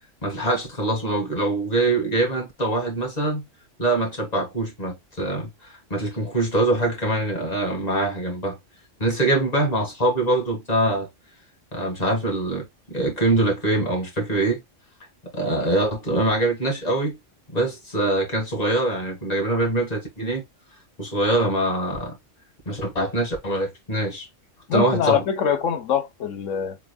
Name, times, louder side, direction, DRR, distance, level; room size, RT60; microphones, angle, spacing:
voice 1, 0.2-3.4 3.8-8.6 9.0-11.1 11.7-14.6 15.3-17.2 17.5-20.4 21.0-22.2 22.7-24.3 24.7-25.2, right 2 dB, 30° left, 2.0 m, -23 dB
voice 2, 24.7-26.8, left 8 dB, 80° left, 1.2 m, -24 dB
4.4 x 3.6 x 2.2 m
omnidirectional pair, 1.3 m